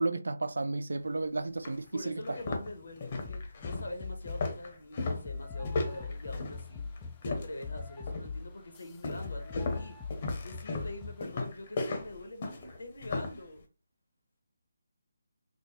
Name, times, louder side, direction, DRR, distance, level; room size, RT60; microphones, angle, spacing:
voice 1, 0.0-2.2, right 2 dB, 75° right, 0.4 m, -32 dB
sound 1, 1.1-1.2 1.6-1.8 2.2-7.7 8.1-8.5 9.0-13.4, left 3 dB, 40° left, 0.9 m, -36 dB
voice 2, 1.8-10.0 10.4-13.6, left 1 dB, 75° left, 1.4 m, -44 dB
sound 2, 3.3-4.6 5.3-11.2, left 4 dB, 15° left, 0.5 m, -41 dB
4.3 x 2.1 x 3.3 m
figure-of-eight pair, 155°, 0 cm